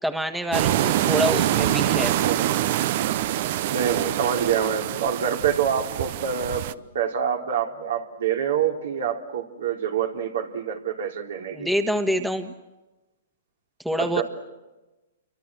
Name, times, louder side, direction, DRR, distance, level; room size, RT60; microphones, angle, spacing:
voice 1, 0.0-2.2 11.5-12.5 13.8-14.2, equal, 5° right, 7 dB, 1.5 m, -26 dB
sound 1, 0.5-6.7, right 13 dB, 55° right, 0.9 m, -25 dB
voice 2, 3.7-6.7 6.9-11.7 14.0-14.2, right 8 dB, 75° right, 3 dB, 3.6 m, -26 dB
28.5 x 24.0 x 7.6 m, 1.1 s
hypercardioid pair, 135°, 0 cm